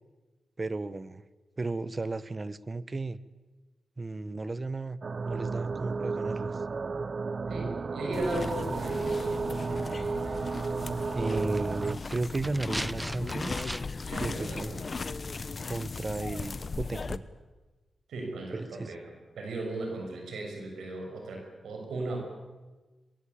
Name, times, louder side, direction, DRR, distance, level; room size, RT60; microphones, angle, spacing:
voice 1, 0.6-1.2 1.6-3.2 4.0-5.0 5.3-6.5 11.1-13.6 14.2-14.8 15.7-17.2 18.5-18.9, right 3 dB, 35° right, 16 dB, 1.2 m, -34 dB
sound 1, 5.0-12.0, right 4 dB, 50° right, 0.7 m, -33 dB
voice 2, 7.5-9.4 14.1-14.9 18.1-22.2, right 2 dB, 90° right, 2 dB, 6.9 m, -36 dB
sound 2, 8.1-17.2, left 4 dB, 50° left, 1.1 m, -37 dB
sound 3, 11.3-14.2 14.4-14.5, right 1 dB, 10° right, 0.7 m, -39 dB
22.5 x 22.0 x 8.7 m, 1.2 s
cardioid pair, 60°, 0 cm